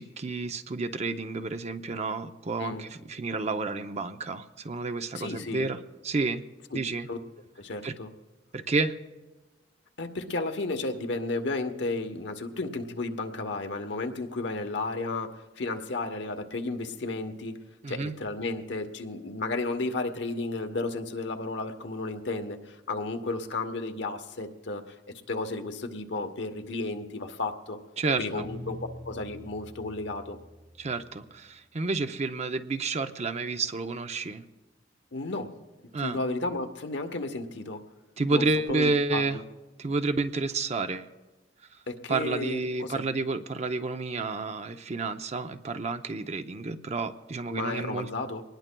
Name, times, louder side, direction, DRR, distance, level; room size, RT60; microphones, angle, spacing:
voice 1, 0.0-5.8 6.0-6.4 6.7-7.1 7.8-7.9 8.5-9.0 17.8-18.1 28.0-28.5 30.8-34.4 35.9-36.2 38.2-39.4 39.8-41.1 42.1-48.1, right 3 dB, 35° right, 9 dB, 0.6 m, -30 dB
voice 2, 5.1-5.6 7.1-7.2 7.6-8.1 10.0-17.6 17.9-25.0 25.3-27.8 28.2-28.8 29.0-30.4 35.1-35.5 36.0-37.8 38.3-39.4 41.9-43.0 47.5-48.4, left 2 dB, 65° left, 6 dB, 1.0 m, -33 dB
Guitar, 28.2-31.4, left 1 dB, 55° right, 3.9 m, -45 dB
24.0 x 19.5 x 2.2 m, 1.2 s
head